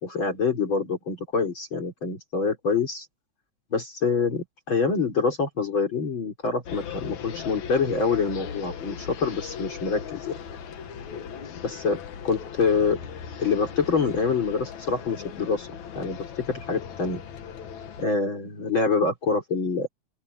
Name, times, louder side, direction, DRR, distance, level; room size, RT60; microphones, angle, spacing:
voice 1, 0.0-3.1 3.7-10.4 11.6-12.0 12.2-13.0 13.4-17.2 18.0-19.9, left 5 dB, 40° left, 4.3 m, -26 dB
sound 1, 6.7-18.0, left 7 dB, 75° left, 3.0 m, -38 dB
open air
omnidirectional pair, 3.3 m